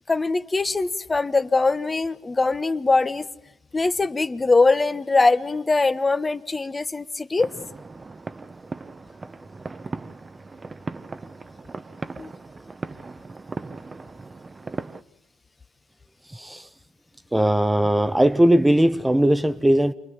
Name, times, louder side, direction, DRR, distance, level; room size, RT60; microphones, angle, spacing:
voice 1, 0.1-3.2 3.7-7.5 12.2-12.3, left 3 dB, 25° left, 1.3 m, -22 dB
sound 1, 7.4-15.0, right 3 dB, 30° right, 1.1 m, -37 dB
voice 2, 16.3-16.6 17.3-19.9, right 1 dB, 10° right, 1.1 m, -19 dB
28.5 x 22.5 x 7.4 m
hypercardioid pair, 55°, 0 cm